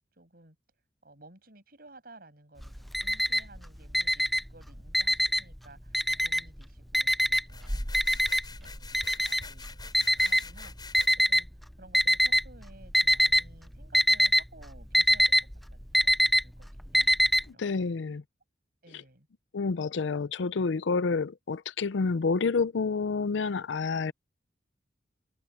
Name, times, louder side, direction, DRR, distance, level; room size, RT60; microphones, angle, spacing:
voice 1, 0.2-0.6 1.0-4.2 4.5-8.2 8.6-11.0 11.3-11.5 11.8-15.3 15.7-16.2 16.4-17.1 17.5-18.0 18.8-19.3, right 2 dB, 55° right, 7.5 m, -55 dB
Alarm, 2.6-3.6 3.9-5.6 5.9-6.6 6.9-11.4 11.9-12.6 12.8-13.5 13.7-17.4, equal, ahead, 0.4 m, -24 dB
sound 1, 7.5-11.1, left 4 dB, 25° left, 7.7 m, -46 dB
voice 2, 17.5-18.2 18.9-19.0 19.5-24.1, left 4 dB, 80° left, 0.5 m, -29 dB
head